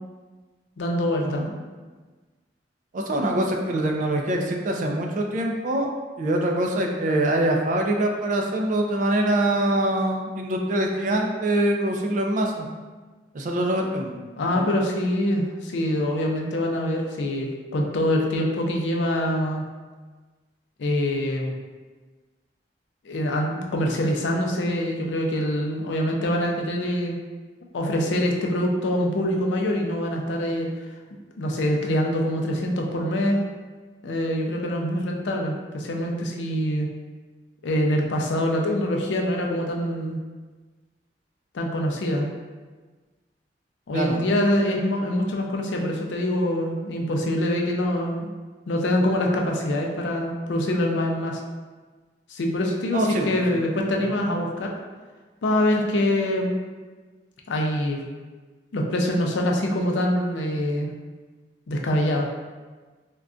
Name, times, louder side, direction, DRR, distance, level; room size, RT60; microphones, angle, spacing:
voice 1, 0.8-1.4 14.4-19.6 20.8-21.5 23.1-27.2 27.7-30.7 31.4-33.4 34.0-36.9 37.6-40.2 41.5-42.3 43.9-48.3 48.7-51.4 52.3-54.7 55.4-56.6 57.5-58.0 58.7-60.9 61.7-62.3, left 1 dB, 90° left, 1 dB, 0.4 m, -24 dB
voice 2, 2.9-5.9 6.2-12.7 13.3-14.1 14.5-14.7 43.9-44.2 52.9-53.6, right 1 dB, 45° right, 2 dB, 0.4 m, -24 dB
3.6 x 2.2 x 2.4 m, 1.3 s
head